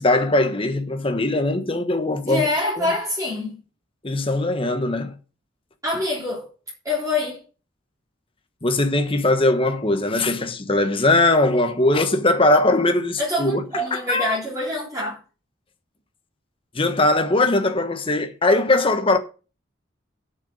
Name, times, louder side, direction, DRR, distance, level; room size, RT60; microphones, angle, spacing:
voice 1, 0.0-2.5 2.8-2.9 4.0-5.1 8.6-13.6 13.9-14.4 16.7-19.2, left 2 dB, 25° left, 1.3 m, -20 dB
voice 2, 2.2-3.6 5.8-6.5 6.8-7.4 13.2-15.2, left 2 dB, 15° right, 3.7 m, -25 dB
8.1 x 6.7 x 7.9 m
head